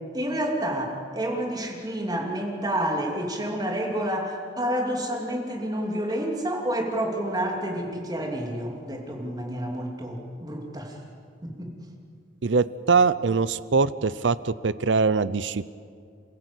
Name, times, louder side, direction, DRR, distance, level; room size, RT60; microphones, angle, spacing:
voice 1, 0.1-11.0 11.4-11.7, right 1 dB, 20° right, 1 dB, 2.9 m, -29 dB
voice 2, 12.4-15.7, right 4 dB, 70° right, 17 dB, 0.7 m, -22 dB
28.0 x 15.5 x 8.2 m, 2.2 s
head